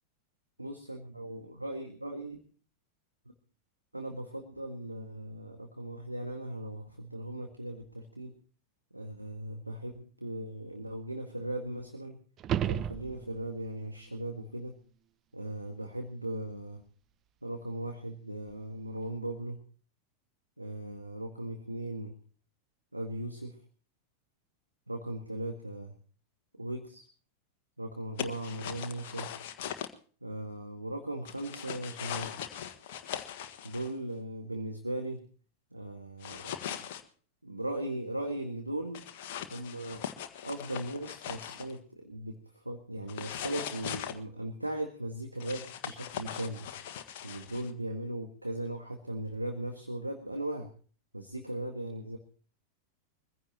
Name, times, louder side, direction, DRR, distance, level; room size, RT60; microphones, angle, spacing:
voice 1, 0.6-2.4 3.3-3.4 3.9-8.3 8.9-12.2 12.6-14.7 15.3-16.8 17.4-19.6 20.6-22.2 22.9-23.6 24.9-26.0 26.6-27.1 27.8-29.3 30.2-32.3 33.6-35.2 35.7-36.8 37.4-39.0 39.5-40.1 40.4-46.7 47.2-50.7 51.1-52.2, right 1 dB, 85° right, 5 dB, 1.7 m, -38 dB
sound 1, 12.4-13.6 18.5-18.6, right 10 dB, 30° right, 0.7 m, -32 dB
sound 2, 28.2-29.9 31.2-33.9 36.2-37.0 38.9-41.7 43.1-44.1 45.4-47.7, left 10 dB, 50° left, 1.5 m, -40 dB
23.5 x 15.5 x 2.9 m, 0.41 s
figure-of-eight pair, 90°, 0 cm